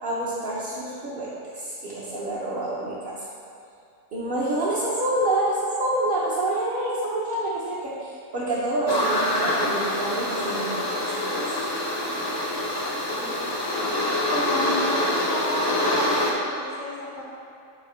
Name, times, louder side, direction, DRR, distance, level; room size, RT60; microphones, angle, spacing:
voice 1, 0.0-3.2 4.1-11.5, right 1 dB, 45° right, -7 dB, 0.9 m, -27 dB
sound 1, 8.9-16.3, left 1 dB, 25° left, 0.7 m, -25 dB
voice 2, 14.6-17.2, left 1 dB, 80° left, -8 dB, 1.5 m, -35 dB
6.3 x 5.7 x 3.2 m, 2.4 s
omnidirectional pair, 1.4 m